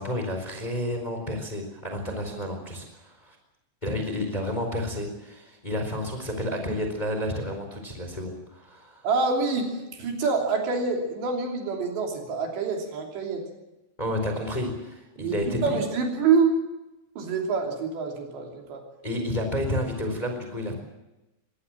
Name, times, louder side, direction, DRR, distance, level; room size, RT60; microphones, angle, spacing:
voice 1, 0.0-3.4 3.8-9.1 14.0-15.8 19.0-20.7, left 1 dB, 10° left, 4 dB, 3.9 m, -30 dB
voice 2, 9.0-13.4 15.2-16.6 17.2-18.8, right 4 dB, 65° right, 1 dB, 5.3 m, -26 dB
23.5 x 18.5 x 7.5 m, 0.99 s
omnidirectional pair, 5.5 m